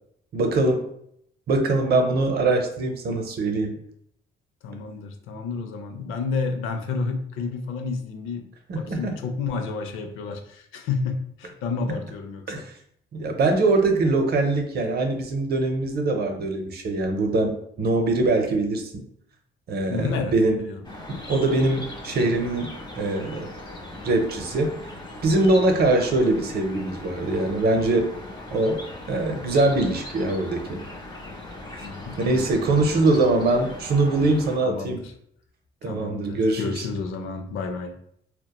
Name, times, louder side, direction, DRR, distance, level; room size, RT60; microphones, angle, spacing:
voice 1, 0.3-0.8 1.5-3.8 8.7-9.2 12.5-12.7 13.1-19.0 19.7-20.6 21.1-23.5 24.0-24.7 25.2-28.1 28.5-28.8 29.1-30.8 32.2-35.0 35.8-36.9, right 2 dB, 55° right, 4 dB, 0.6 m, -23 dB
voice 2, 4.6-8.5 8.7-12.6 19.9-20.9 31.8-33.4 34.3-35.1 35.8-38.0, left 4 dB, 85° left, 6 dB, 0.4 m, -31 dB
sound 1, 20.8-34.6, left 1 dB, 20° left, 0.8 m, -39 dB
2.8 x 2.1 x 2.2 m, 0.69 s
cardioid pair, 90°, 20 cm